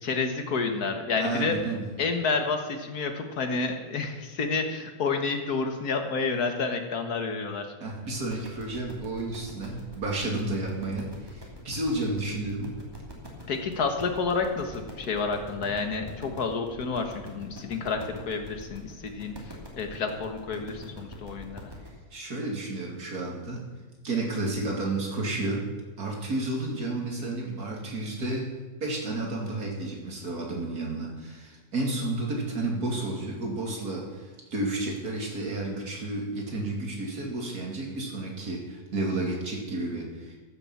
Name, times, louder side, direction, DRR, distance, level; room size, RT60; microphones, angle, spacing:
voice 1, 0.0-1.6 2.0-7.7 13.5-21.7, left 4 dB, 85° left, 5 dB, 1.9 m, -29 dB
voice 2, 1.2-1.8 7.8-12.7 22.1-23.6 24.0-25.7 26.0-28.5 28.8-40.4, right 2 dB, 85° right, -1 dB, 3.1 m, -31 dB
sound 1, 8.2-21.9, equal, 15° right, 2.6 m, -45 dB
14.0 x 7.0 x 7.2 m, 1.4 s
omnidirectional pair, 1.6 m